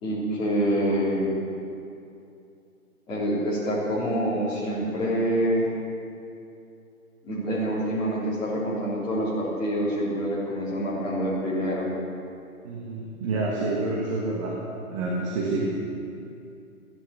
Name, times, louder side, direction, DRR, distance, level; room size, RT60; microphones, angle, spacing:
voice 1, 0.0-1.3 3.1-5.7 7.2-11.9, equal, 10° left, -9 dB, 3.3 m, -26 dB
voice 2, 12.6-15.8, right 2 dB, 20° right, -3 dB, 1.4 m, -28 dB
15.5 x 11.5 x 7.1 m, 2.6 s
hypercardioid pair, 160°, 44 cm